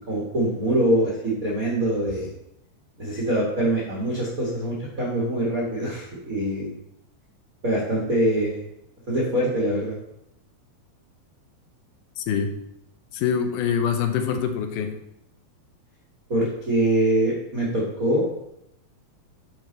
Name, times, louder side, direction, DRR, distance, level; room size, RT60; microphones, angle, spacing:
voice 1, 0.1-2.3 3.0-6.7 7.6-8.6 9.1-9.9 16.3-18.2, right 1 dB, 80° right, -5 dB, 0.7 m, -24 dB
voice 2, 12.2-12.5 13.1-14.9, left 7 dB, 80° left, 5 dB, 2.1 m, -24 dB
9.7 x 4.4 x 3.9 m, 0.81 s
omnidirectional pair, 4.3 m